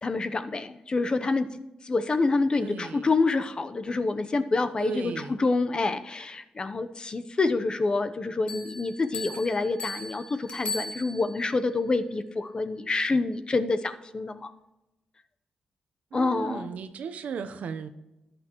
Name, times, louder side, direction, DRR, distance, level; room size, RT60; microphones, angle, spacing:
voice 1, 0.0-1.5 1.8-14.5 16.1-16.7, left 3 dB, 35° left, 10 dB, 0.8 m, -27 dB
voice 2, 2.6-3.1 4.8-5.4 16.1-17.9, right 6 dB, 75° right, 10 dB, 0.8 m, -35 dB
Bell, 8.5-11.5, left 3 dB, 50° left, 2.2 m, -38 dB
14.0 x 9.7 x 3.1 m, 0.96 s
cardioid pair, 75°, 3 cm